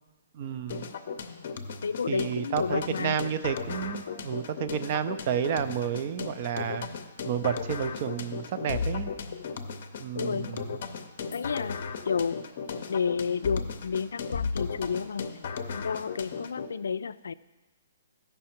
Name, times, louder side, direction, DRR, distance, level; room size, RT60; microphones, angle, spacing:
voice 1, 0.3-0.9 2.1-6.9 7.3-9.1 10.0-10.8, right 8 dB, 30° right, 11 dB, 0.4 m, -31 dB
sound 1, 0.7-16.7, left 5 dB, 40° left, 0.6 m, -36 dB
voice 2, 1.8-3.2 10.1-10.5 11.3-11.8 12.1-12.4 12.9-15.3 15.7-17.3, left 6 dB, 90° left, 15 dB, 0.3 m, -31 dB
14.0 x 5.6 x 4.4 m, 1.2 s
hypercardioid pair, 180°, 0 cm